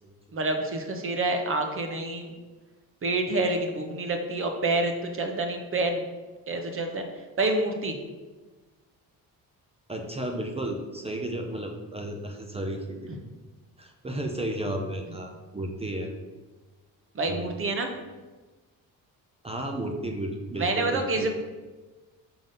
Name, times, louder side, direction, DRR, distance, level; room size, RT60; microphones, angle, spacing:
voice 1, 0.3-2.3 3.0-6.1 6.5-7.0 7.4-8.0 17.1-17.9 20.6-21.3, right 2 dB, 35° right, 4 dB, 1.0 m, -27 dB
voice 2, 9.9-13.1 13.8-16.1 17.2-17.5 19.4-21.3, right 1 dB, 15° right, 3 dB, 0.6 m, -33 dB
6.0 x 3.9 x 5.2 m, 1.3 s
cardioid pair, 110°, 36 cm